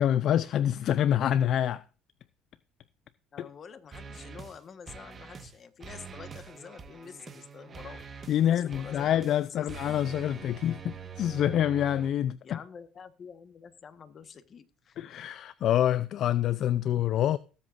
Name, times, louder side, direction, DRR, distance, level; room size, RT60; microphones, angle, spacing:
voice 1, 0.0-1.8 3.4-3.5 8.3-12.6 15.0-17.4, left 11 dB, 55° left, 0.4 m, -26 dB
voice 2, 3.3-8.0 8.4-10.0 12.4-15.0, left 6 dB, 40° left, 1.3 m, -48 dB
sound 1, 3.9-4.6 4.9-5.6 5.8-12.1, right 6 dB, 30° right, 1.4 m, -45 dB
19.5 x 7.8 x 2.6 m
cardioid pair, 105°, 0 cm